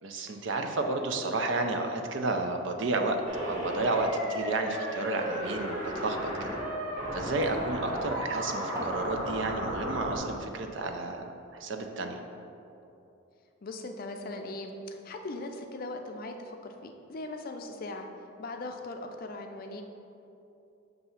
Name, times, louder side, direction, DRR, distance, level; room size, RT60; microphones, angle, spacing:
voice 1, 0.0-6.6 7.1-12.2, right 2 dB, 60° right, 4 dB, 0.5 m, -31 dB
sound 1, 2.6-9.1, right 1 dB, 15° right, 0.9 m, -48 dB
sound 2, 3.3-10.2, equal, 40° right, 1.3 m, -34 dB
voice 2, 13.6-18.1 18.4-19.8, left 2 dB, 45° left, 4 dB, 0.4 m, -39 dB
6.7 x 2.7 x 5.6 m, 2.8 s
head